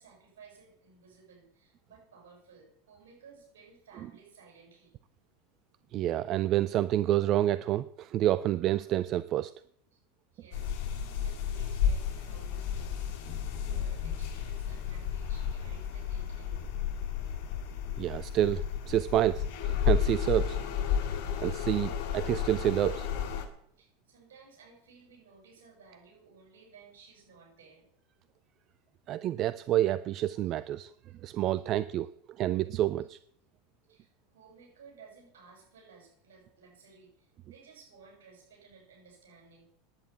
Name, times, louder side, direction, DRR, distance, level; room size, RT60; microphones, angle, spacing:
voice 1, 0.0-4.9 9.9-10.0 10.3-13.2 13.6-16.8 18.7-18.8 19.2-19.6 23.8-27.9 30.4-30.5 31.6-31.7 33.9-39.6, right 5 dB, 70° right, 0 dB, 7.1 m, -57 dB
voice 2, 5.9-9.5 18.0-20.6 21.4-23.1 29.1-30.9 31.2-32.1 32.4-33.2, right 13 dB, 45° right, 16 dB, 0.5 m, -28 dB
sound 1, 10.5-23.5, left 8 dB, 60° left, 2.8 m, -32 dB
10.5 x 8.9 x 9.0 m, 0.65 s
hypercardioid pair, 80°, 0 cm